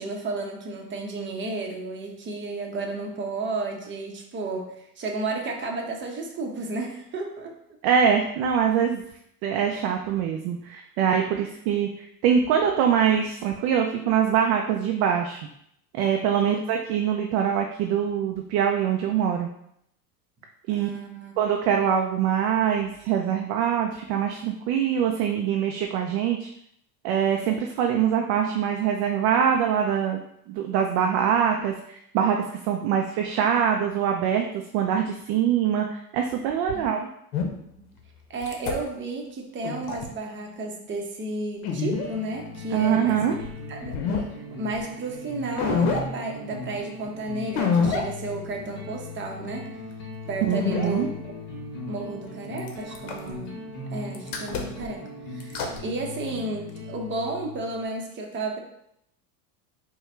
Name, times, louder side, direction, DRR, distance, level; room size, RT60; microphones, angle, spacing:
voice 1, 0.0-7.5 16.4-16.6 20.7-21.3 36.7-36.8 37.8-37.9 38.3-43.4 43.7-43.9 44.6-49.7 50.3-51.3 51.9-53.5 53.9-58.6, right 2 dB, 25° right, 1 dB, 0.8 m, -32 dB
voice 2, 7.8-9.0 9.4-15.4 15.9-19.5 20.7-20.9 21.4-26.5 27.0-30.2 30.5-31.7 32.1-37.1 42.7-43.3 50.5-51.1, right 8 dB, 45° right, 3 dB, 0.5 m, -24 dB
sound 1, 37.3-37.5 38.4-38.7 39.6-40.0 41.6-42.1 43.4-43.5 43.9-44.2 44.7-44.8 45.6-46.0 47.6-48.0 48.5-48.6 50.5-50.9 52.6-53.3 54.1-54.9 55.4-55.8, left 5 dB, 65° left, 0.9 m, -25 dB
sound 2, 41.9-57.9, left 2 dB, 40° left, 1.2 m, -39 dB
4.7 x 2.3 x 3.3 m, 0.74 s
hypercardioid pair, 95°, 50 cm